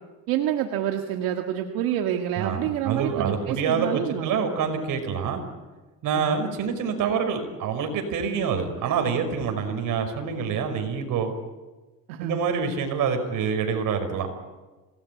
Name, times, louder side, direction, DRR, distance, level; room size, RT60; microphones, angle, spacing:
voice 1, 0.3-4.4 6.2-6.4 12.1-12.4, right 11 dB, 85° right, 4 dB, 1.9 m, -28 dB
voice 2, 2.4-5.4 6.0-11.3 12.2-14.3, right 6 dB, 65° right, 6 dB, 5.7 m, -26 dB
26.5 x 19.0 x 9.5 m, 1.2 s
cardioid pair, 110°, 34 cm